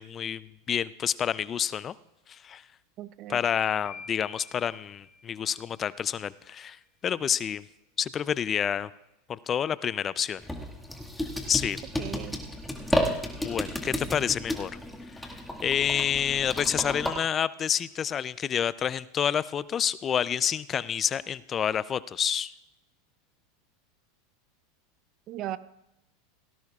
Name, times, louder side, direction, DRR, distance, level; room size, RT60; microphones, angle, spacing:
voice 1, 0.0-1.9 2.3-2.6 3.3-6.8 7.0-7.6 8.0-8.9 9.3-10.4 11.5-11.8 13.0-14.7 15.6-22.5, left 8 dB, 30° left, 18 dB, 0.4 m, -28 dB
voice 2, 3.0-3.4 12.0-12.4 25.3-25.6, right 13 dB, 45° right, 15 dB, 0.7 m, -37 dB
sound 1, 3.8-6.0, left 5 dB, 50° left, 3.2 m, -48 dB
sound 2, 10.4-17.1, left 1 dB, 5° left, 1.8 m, -32 dB
18.0 x 16.5 x 2.4 m, 0.88 s
hypercardioid pair, 100°, 0 cm